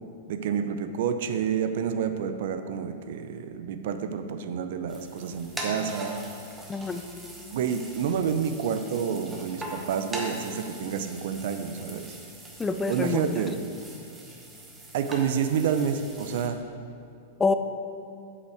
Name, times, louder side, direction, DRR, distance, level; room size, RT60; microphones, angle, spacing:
voice 1, 0.3-6.2 7.5-12.1 12.9-13.7 14.9-16.6, right 7 dB, 65° right, 9 dB, 0.6 m, -29 dB
sound 1, 4.9-16.5, right 1 dB, 10° right, 1.2 m, -41 dB
voice 2, 6.7-7.0 12.6-13.4 17.4-17.5, left 4 dB, 10° left, 9 dB, 0.4 m, -26 dB
8.2 x 5.5 x 6.6 m, 2.6 s
supercardioid pair, 150°, 0 cm